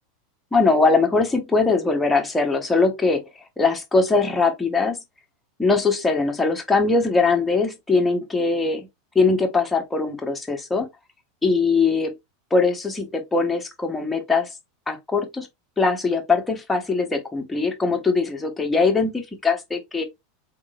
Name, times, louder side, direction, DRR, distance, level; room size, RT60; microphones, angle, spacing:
voice 1, 0.5-3.3 3.6-5.0 5.6-8.9 9.1-10.9 11.4-12.1 12.5-14.5 14.9-15.5 15.8-20.0, left 4 dB, 10° left, 1.2 m, -21 dB
3.8 x 3.6 x 2.4 m
hypercardioid pair, 100°, 0 cm